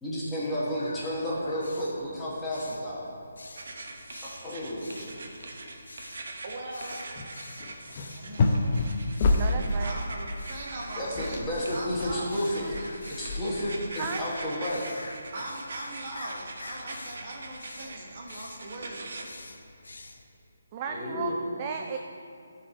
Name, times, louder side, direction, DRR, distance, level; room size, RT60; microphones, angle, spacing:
voice 1, 0.0-3.1 4.4-5.3 11.0-12.7 13.2-14.8 20.9-21.5, equal, 10° left, -9 dB, 1.5 m, -31 dB
sound 1, 0.7-20.2, left 2 dB, 75° left, 0.6 m, -47 dB
sound 2, 3.6-19.2, right 2 dB, 65° right, 0.9 m, -43 dB
voice 2, 6.1-7.1 8.1-8.7 9.8-11.4 11.7-12.9 15.3-19.2, right 2 dB, 45° right, -2 dB, 1.3 m, -40 dB
sound 3, 7.2-7.3 7.6-10.0 10.7-10.8 11.0-13.8, left 3 dB, 35° left, 0.6 m, -28 dB
voice 3, 9.3-10.0 14.0-14.2 20.7-22.0, right 6 dB, 25° right, 3 dB, 0.3 m, -35 dB
12.0 x 4.1 x 3.2 m, 2.6 s
figure-of-eight pair, 155°, 0 cm